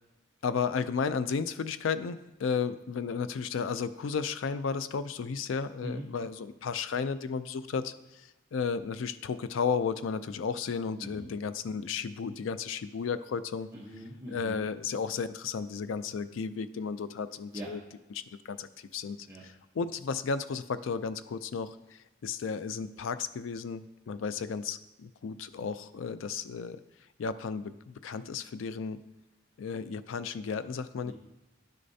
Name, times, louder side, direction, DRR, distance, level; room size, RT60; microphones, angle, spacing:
voice 1, 0.4-13.7 14.3-17.8 18.5-19.3 19.8-26.8 27.2-29.0 29.6-31.1, left 5 dB, 75° left, 13 dB, 0.4 m, -33 dB
voice 2, 11.0-11.3 13.7-14.7 17.5-17.7 19.3-19.4 31.0-31.1, equal, 15° right, -6 dB, 0.9 m, -41 dB
10.5 x 6.5 x 2.7 m, 0.99 s
head